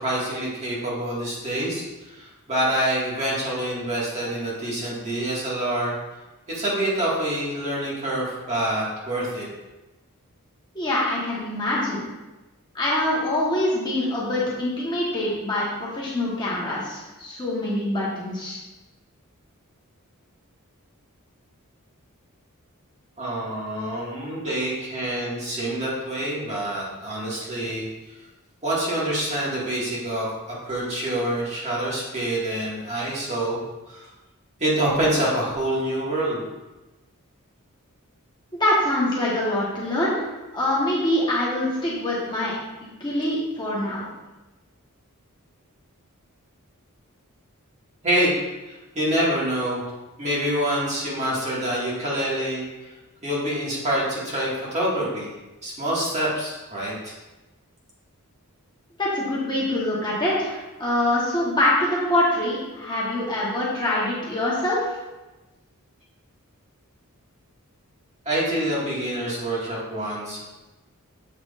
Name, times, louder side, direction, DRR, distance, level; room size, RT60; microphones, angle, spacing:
voice 1, 0.0-5.9 6.5-9.5 23.2-27.9 28.6-33.6 33.9-34.1 34.6-36.4 48.0-48.3 48.6-49.8 50.2-52.6 53.2-55.3 55.6-57.1 68.3-70.4, right 1 dB, 30° right, -6 dB, 2.0 m, -26 dB
voice 2, 10.7-12.1 12.7-18.6 38.6-44.0 59.0-65.0, left 1 dB, 20° left, -6 dB, 1.3 m, -24 dB
7.6 x 6.1 x 2.5 m, 1.1 s
head